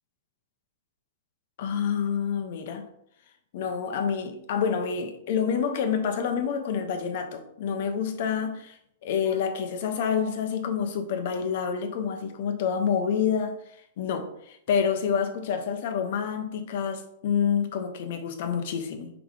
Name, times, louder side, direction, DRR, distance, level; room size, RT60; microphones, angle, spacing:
voice 1, 1.6-2.9 3.5-13.6 14.0-19.1, left 7 dB, 60° left, 1.0 m, -28 dB
4.9 x 4.1 x 4.9 m
supercardioid pair, 150°, 0 cm